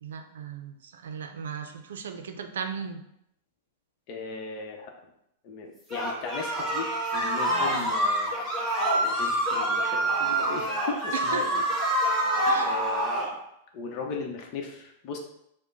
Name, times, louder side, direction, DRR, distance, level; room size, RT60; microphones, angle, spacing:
voice 1, 0.0-3.0 7.5-7.9 11.1-11.6 12.4-12.8, right 6 dB, 90° right, 7 dB, 0.5 m, -36 dB
voice 2, 4.1-4.9 5.4-8.3 9.0-11.6 12.5-13.3 13.7-15.2, left 4 dB, 45° left, 2 dB, 0.8 m, -37 dB
sound 1, 5.9-13.3, right 1 dB, ahead, 1.2 m, -26 dB
4.9 x 2.2 x 4.0 m, 0.77 s
hypercardioid pair, 135°, 0 cm